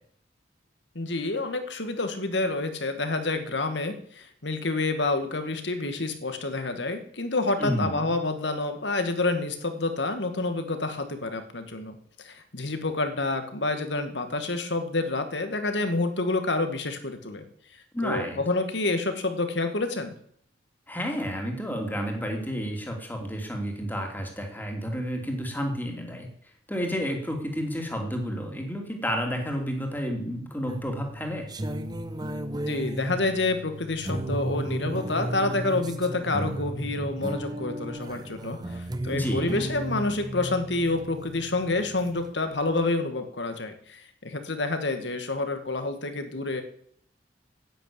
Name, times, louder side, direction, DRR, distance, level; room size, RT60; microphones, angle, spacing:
voice 1, 1.0-12.0 12.2-17.4 18.0-20.1 32.7-46.6, left 2 dB, 75° left, 8 dB, 2.0 m, -28 dB
voice 2, 7.6-8.1 17.9-18.4 20.9-26.3 26.7-31.5 39.1-39.6, equal, 10° left, 2 dB, 2.7 m, -31 dB
sound 1, 30.7-42.3, right 1 dB, 25° right, 0.9 m, -34 dB
10.0 x 8.9 x 8.6 m, 0.64 s
head